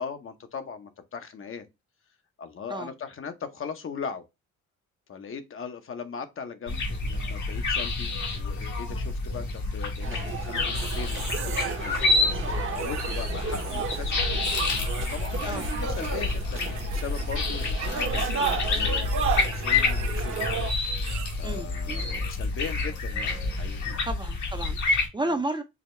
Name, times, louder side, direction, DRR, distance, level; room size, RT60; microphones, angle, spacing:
voice 1, 0.0-1.7 2.4-4.3 5.1-12.0 12.4-14.5 14.9-19.1 19.5-20.6 21.3-24.0 25.2-25.4, left 6 dB, 45° left, 0.8 m, -39 dB
sound 1, 6.7-25.1, left 3 dB, 75° left, 1.5 m, -28 dB
sound 2, 10.0-20.7, right 6 dB, 45° right, 0.9 m, -33 dB
sound 3, 10.5-12.0 12.7-14.1 14.4-16.5 16.8-17.4 17.6-21.6, right 8 dB, 65° right, 0.8 m, -42 dB
voice 2, 21.4-22.1 24.0-25.6, right 2 dB, 15° right, 0.6 m, -32 dB
4.8 x 2.2 x 3.2 m
cardioid pair, 90°, 30 cm